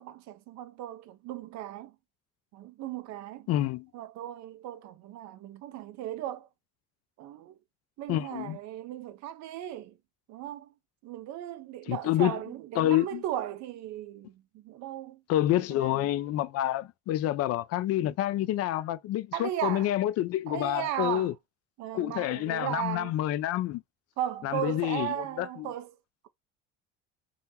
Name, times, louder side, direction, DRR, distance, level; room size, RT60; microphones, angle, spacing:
voice 1, 0.0-2.0 2.5-3.5 3.9-6.5 7.2-7.6 8.0-10.0 10.3-10.7 11.0-15.2 15.7-16.0 19.3-19.9 20.5-21.3 21.8-23.1 24.2-26.0, right 12 dB, 60° right, 0.6 m, -36 dB
voice 2, 3.5-3.9 8.1-8.6 11.9-12.4 12.8-13.2 15.3-21.3 21.9-23.8 24.4-25.7, left 13 dB, 50° left, 0.4 m, -28 dB
3.7 x 2.0 x 2.8 m
supercardioid pair, 85°, 31 cm